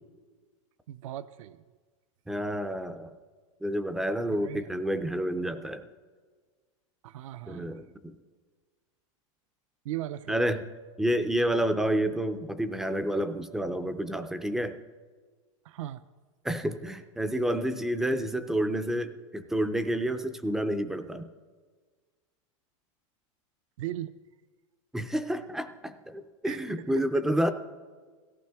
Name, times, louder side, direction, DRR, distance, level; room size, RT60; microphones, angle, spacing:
voice 1, 0.9-1.6 4.4-4.7 7.0-7.8 9.8-10.4 15.6-16.0 23.8-24.1 26.4-26.6 27.0-27.1, right 13 dB, 70° right, 14 dB, 0.5 m, -37 dB
voice 2, 2.3-3.1 3.6-5.8 7.5-8.2 10.3-10.6 11.0-14.8 16.4-21.3 24.9-27.5, right 1 dB, ahead, 10 dB, 0.3 m, -29 dB
17.0 x 14.5 x 3.5 m, 1.5 s
supercardioid pair, 160°, 17 cm